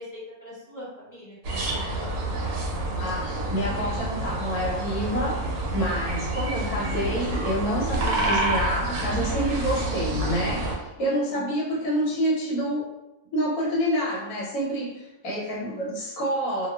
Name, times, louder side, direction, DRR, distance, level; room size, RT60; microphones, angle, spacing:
voice 1, 0.0-1.6 1.9-2.2 6.4-7.2 11.0-11.5 15.6-16.0, left 2 dB, 25° left, -10 dB, 0.4 m, -42 dB
sound 1, 1.4-10.8, right 1 dB, 65° right, 0.9 m, -28 dB
voice 2, 3.0-5.3 5.7-12.9 13.3-16.7, equal, 75° left, -5 dB, 1.3 m, -28 dB
2.8 x 2.2 x 2.2 m, 0.96 s
omnidirectional pair, 1.6 m